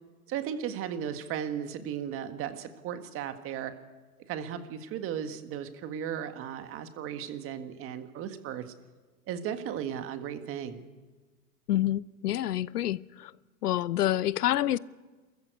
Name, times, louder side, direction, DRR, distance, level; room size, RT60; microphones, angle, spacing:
voice 1, 0.3-3.7 4.3-8.7 9.3-10.8, right 9 dB, 30° right, 1.7 m, -36 dB
voice 2, 11.7-13.3 13.6-14.8, left 13 dB, 80° left, 0.8 m, -27 dB
27.5 x 14.5 x 8.2 m
hypercardioid pair, 135°, 45 cm